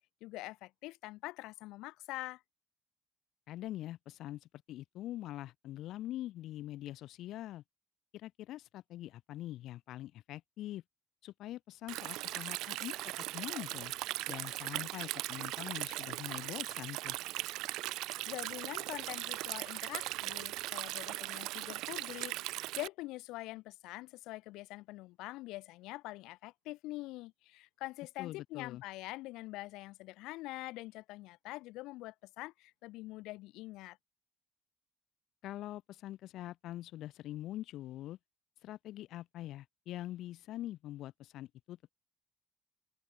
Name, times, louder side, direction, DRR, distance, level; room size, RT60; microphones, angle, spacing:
voice 1, 0.2-2.4 18.0-34.0, left 19 dB, 85° left, 7.5 m, -45 dB
voice 2, 3.5-7.6 8.1-10.8 11.2-13.9 14.3-17.2 28.2-28.8 35.4-38.2 38.6-41.8, left 14 dB, 60° left, 2.5 m, -44 dB
Stream, 11.9-22.9, right 18 dB, 80° right, 0.4 m, -39 dB
open air
cardioid pair, 170°, 0 cm